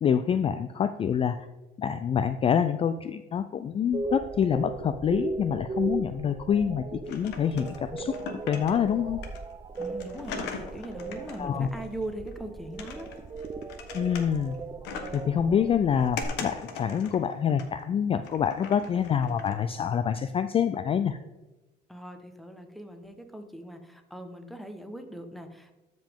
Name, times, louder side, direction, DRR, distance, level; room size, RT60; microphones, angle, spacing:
voice 1, 0.0-1.5 1.8-6.8 7.1-8.1 8.5-9.2 11.4-11.7 13.9-14.5 15.1-21.2, left 8 dB, 35° left, 11 dB, 0.3 m, -26 dB
sound 1, 3.9-16.2, right 3 dB, 25° right, 0.6 m, -37 dB
sound 2, 7.1-8.9 9.2-12.3 12.8-14.6 14.8-15.3 15.7-17.9 18.2-19.5, left 5 dB, 85° left, 1.2 m, -40 dB
voice 2, 9.8-13.1 21.9-25.7, right 1 dB, ahead, 6 dB, 1.0 m, -40 dB
13.0 x 5.1 x 3.6 m, 1.1 s
cardioid pair, 110°, 17 cm